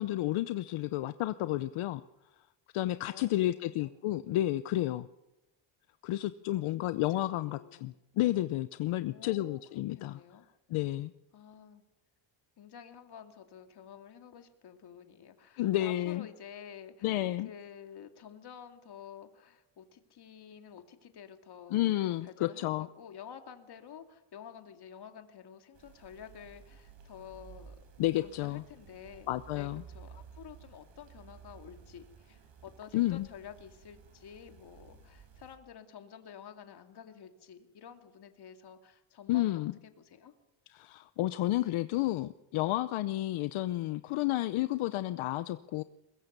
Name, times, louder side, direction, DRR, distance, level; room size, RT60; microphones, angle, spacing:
voice 1, 0.0-2.0 2.7-5.1 6.0-10.2 10.7-11.1 15.6-16.3 17.0-17.5 21.7-22.9 28.0-28.6 29.3-29.8 32.9-33.3 39.3-39.7 40.7-45.8, left 15 dB, 75° left, 13 dB, 0.8 m, -31 dB
voice 2, 3.0-3.9 6.6-7.9 9.1-10.5 11.3-11.8 12.6-21.8 22.2-27.8 28.2-29.3 29.5-40.3, left 8 dB, 50° left, 6 dB, 2.5 m, -50 dB
sound 1, 25.7-35.6, right 6 dB, 65° right, 4.7 m, -54 dB
22.5 x 22.0 x 6.7 m, 0.95 s
cardioid pair, 140°, 49 cm